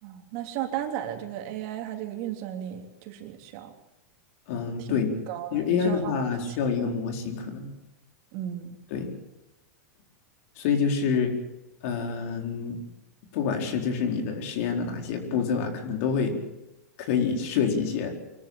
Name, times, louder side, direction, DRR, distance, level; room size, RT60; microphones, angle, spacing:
voice 1, 0.0-3.7 4.8-5.0 5.3-6.2 6.5-6.6 8.3-8.8, right 11 dB, 55° right, 3 dB, 3.3 m, -35 dB
voice 2, 4.5-5.1 5.5-7.7 8.9-9.1 10.6-11.3 11.8-12.8 13.3-16.3 17.0-18.1, left 6 dB, 60° left, 3 dB, 4.3 m, -27 dB
25.0 x 13.5 x 8.9 m, 0.98 s
supercardioid pair, 130°, 9 cm